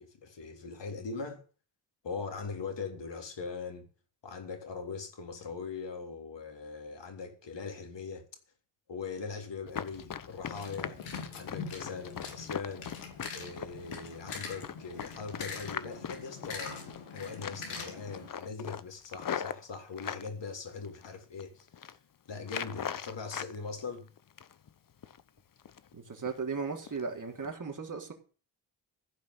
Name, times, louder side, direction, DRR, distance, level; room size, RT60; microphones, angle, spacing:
voice 1, 0.0-1.4 2.0-3.9 4.2-8.3 8.9-11.0 11.3-12.9 13.3-16.9 17.1-22.0 22.3-24.1, left 5 dB, 60° left, 3.6 m, -41 dB
Run, 9.7-17.1 17.4-17.8 18.1-20.3 20.8-21.4 21.7-22.0 22.4-23.5 23.9-24.7 25.0-25.2 25.6-25.9 26.3-26.4 26.9-27.0 27.4-27.5, left 8 dB, 40° left, 1.0 m, -40 dB
sound 1, 10.4-18.3, left 5 dB, 85° left, 3.2 m, -43 dB
voice 2, 25.9-28.1, right 5 dB, 40° right, 3.7 m, -36 dB
15.5 x 5.3 x 8.4 m
supercardioid pair, 45°, 49 cm